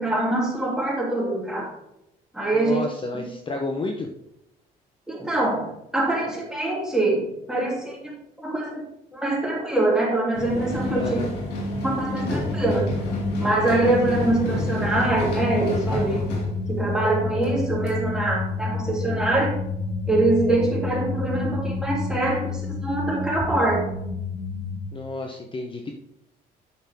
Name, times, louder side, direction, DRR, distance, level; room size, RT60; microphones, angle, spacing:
voice 1, 0.0-1.7 2.3-2.8 3.1-3.3 5.1-11.2 11.8-12.9 13.4-16.3 16.7-19.6 20.1-24.0, right 2 dB, 5° right, -3 dB, 3.0 m, -24 dB
voice 2, 2.5-4.1 11.0-11.3 24.9-25.9, left 2 dB, 30° left, 3 dB, 0.9 m, -31 dB
sound 1, 10.3-17.1 17.4-17.5 17.9-18.0, left 1 dB, 80° left, 2.3 m, -30 dB
sound 2, 12.1-24.8, left 3 dB, 75° right, 1.4 m, -30 dB
9.3 x 6.4 x 3.6 m, 0.84 s
cardioid pair, 110°, 17 cm